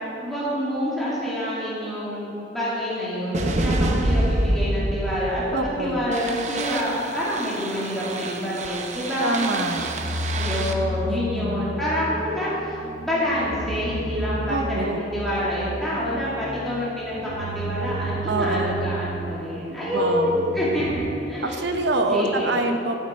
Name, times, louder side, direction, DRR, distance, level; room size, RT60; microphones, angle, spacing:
voice 1, 0.2-9.5 10.4-21.6 22.0-22.7, equal, ahead, -10 dB, 2.3 m, -27 dB
sound 1, 3.3-21.1, right 1 dB, 40° right, 0.7 m, -29 dB
voice 2, 5.5-6.0 9.2-9.8 11.1-11.7 14.5-15.0 18.3-18.8 19.9-20.3 21.4-23.0, right 2 dB, 70° right, 5 dB, 0.8 m, -25 dB
13.5 x 8.1 x 4.3 m, 2.8 s
head